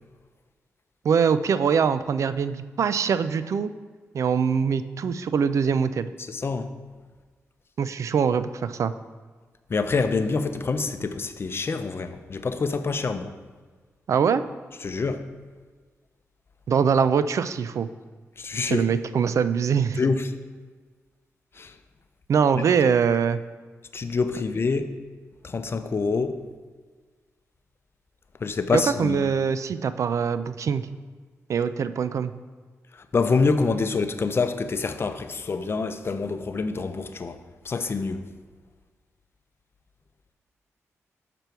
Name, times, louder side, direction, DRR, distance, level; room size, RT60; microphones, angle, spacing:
voice 1, 1.0-3.7 4.1-6.1 7.8-8.9 14.1-14.4 16.7-17.9 18.7-20.0 22.3-23.4 28.7-30.9 31.5-32.3, right 6 dB, 65° right, 13 dB, 0.4 m, -23 dB
voice 2, 6.2-6.7 9.7-13.3 14.8-15.2 18.4-18.8 20.0-20.3 21.6-21.7 22.5-22.6 23.9-24.9 25.4-26.4 28.4-29.2 32.9-38.3, left 4 dB, 45° left, 9 dB, 0.6 m, -26 dB
6.6 x 5.9 x 4.6 m, 1.5 s
cardioid pair, 60°, 6 cm